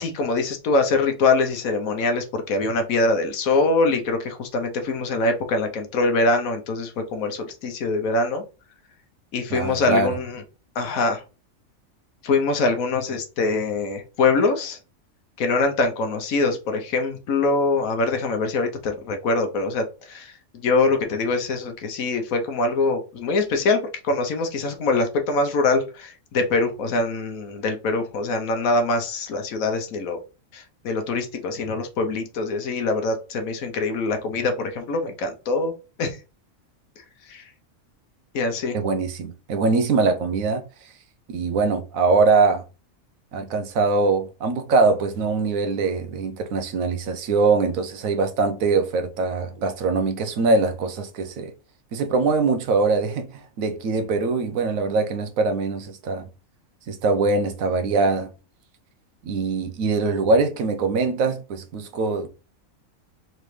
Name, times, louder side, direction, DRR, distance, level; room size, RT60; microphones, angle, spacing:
voice 1, 0.0-8.4 9.3-10.4 10.7-11.2 12.2-14.8 15.4-30.2 30.5-35.7 36.0-36.2 37.3-37.4 38.3-38.8, left 3 dB, 85° left, 1.3 m, -23 dB
voice 2, 9.5-10.2 38.7-40.6 41.3-42.6 43.3-51.5 51.9-53.3 53.6-56.3 56.9-58.3 59.2-62.3, right 4 dB, 80° right, 1.1 m, -22 dB
3.9 x 3.4 x 3.2 m
omnidirectional pair, 1.4 m